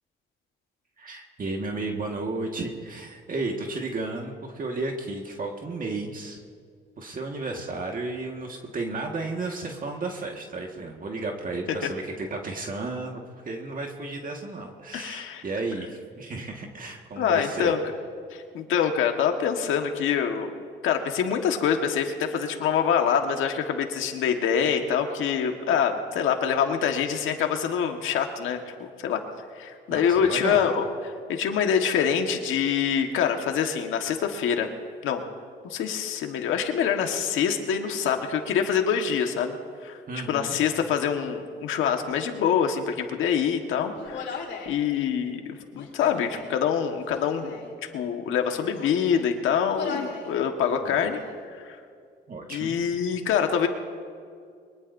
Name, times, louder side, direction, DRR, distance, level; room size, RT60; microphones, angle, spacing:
voice 1, 1.0-6.4 7.0-17.7 29.9-30.7 40.1-40.6 50.8-51.0 52.3-52.8, right 3 dB, 45° right, 1 dB, 1.7 m, -33 dB
voice 2, 14.9-15.4 17.2-17.8 18.3-20.5 20.8-28.7 29.0-29.2 29.5-34.7 35.0-35.2 35.6-39.6 39.8-40.0 40.3-44.4 44.6-47.5 47.9-51.2 51.5-51.8 52.5-53.7, left 7 dB, 85° left, 4 dB, 1.5 m, -25 dB
Human voice, 43.9-44.8 45.7-46.6 47.0-47.7 48.4-49.3 49.7-50.3 50.7-51.3, left 5 dB, 65° left, 3.1 m, -38 dB
22.5 x 20.0 x 2.7 m, 2.2 s
cardioid pair, 90°, 20 cm